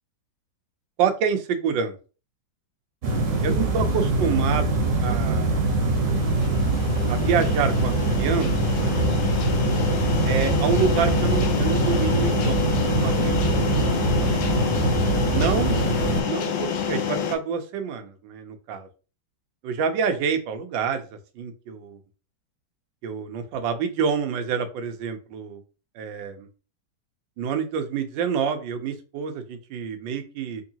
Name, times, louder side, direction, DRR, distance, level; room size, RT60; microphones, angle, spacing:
voice 1, 1.0-2.0 3.4-5.6 7.1-9.0 10.2-13.7 15.3-15.8 16.2-18.9 19.6-21.0 21.4-22.0 23.0-25.6 25.9-26.5 27.4-30.6, right 6 dB, 75° right, 7 dB, 1.3 m, -27 dB
sound 1, 3.0-16.2, right 2 dB, 45° right, 1.2 m, -23 dB
sound 2, 5.8-17.4, left 7 dB, 75° left, 1.3 m, -28 dB
3.7 x 3.3 x 2.7 m, 0.35 s
omnidirectional pair, 2.2 m